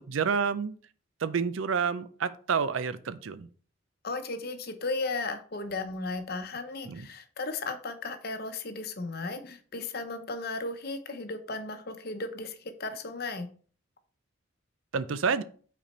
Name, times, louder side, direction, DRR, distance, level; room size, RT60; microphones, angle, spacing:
voice 1, 0.1-0.7 1.2-3.5 6.8-7.1 14.9-15.4, right 6 dB, 75° right, 14 dB, 0.5 m, -29 dB
voice 2, 4.0-13.5, left 3 dB, 50° left, 8 dB, 0.8 m, -35 dB
5.9 x 4.2 x 4.3 m, 0.43 s
head